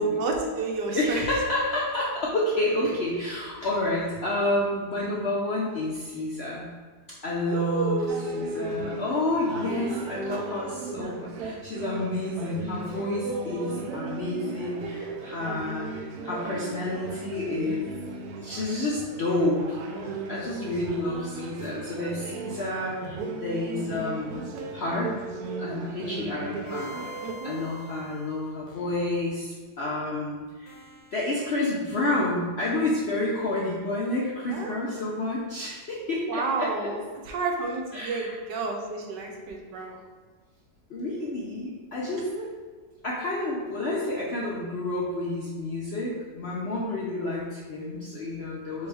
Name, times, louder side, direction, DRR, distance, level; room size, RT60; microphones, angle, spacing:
voice 1, 0.0-1.3 7.4-9.0 10.3-10.4 27.2-27.6 34.5-34.7 36.3-40.0 42.1-42.5 48.8-48.9, right 3 dB, 85° right, 1 dB, 1.4 m, -31 dB
voice 2, 0.9-6.7 7.2-8.0 8.3-17.9 18.4-19.8 20.3-24.4 24.7-25.1 25.6-26.9 27.4-30.7 31.1-36.9 37.9-38.3 40.9-42.3 43.0-48.9, left 2 dB, 70° left, -5 dB, 0.6 m, -29 dB
sound 1, 8.1-27.3, right 3 dB, 70° right, 1.0 m, -37 dB
sound 2, 26.7-29.3 30.7-31.3, left 1 dB, 85° left, 1.5 m, -46 dB
4.6 x 3.5 x 3.3 m, 1.5 s
omnidirectional pair, 1.8 m